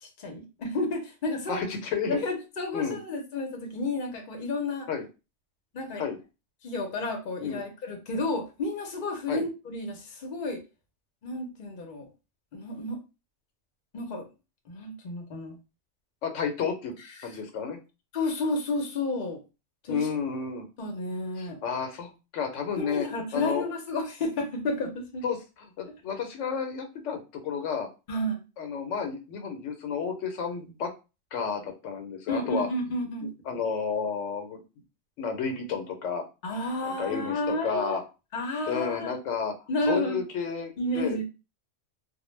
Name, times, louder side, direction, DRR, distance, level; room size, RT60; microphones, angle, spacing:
voice 1, 0.0-1.7 2.0-4.9 5.7-6.0 6.6-10.6 11.2-12.1 12.5-13.0 13.9-14.3 14.7-15.6 17.2-17.3 18.1-19.4 19.8-20.1 20.8-21.6 22.8-25.2 28.1-28.4 32.3-33.3 36.4-38.0 38.3-39.1 39.7-40.2 40.8-41.2, left 2 dB, 50° left, 3 dB, 0.7 m, -31 dB
voice 2, 1.5-2.2 2.7-3.0 4.9-5.0 6.0-6.2 7.4-7.6 9.3-9.4 16.2-16.9 17.2-17.8 19.9-20.7 21.4-23.1 23.3-23.7 25.2-25.4 25.8-27.9 28.6-30.9 31.3-32.7 33.2-34.6 35.2-36.2 36.8-38.0 38.7-39.5 39.9-41.2, left 6 dB, 90° left, 5 dB, 1.0 m, -31 dB
2.2 x 2.1 x 3.1 m, 0.29 s
omnidirectional pair, 1.2 m